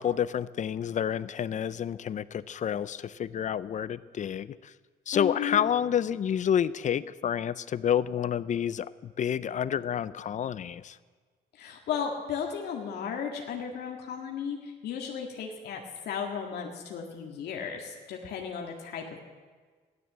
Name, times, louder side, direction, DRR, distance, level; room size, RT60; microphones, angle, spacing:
voice 1, 0.0-4.6 5.1-11.0, left 9 dB, 45° left, 17 dB, 0.6 m, -29 dB
voice 2, 5.1-5.7 11.5-19.2, left 7 dB, 75° left, 1 dB, 1.9 m, -35 dB
15.5 x 12.5 x 7.5 m, 1.5 s
cardioid pair, 105°, 17 cm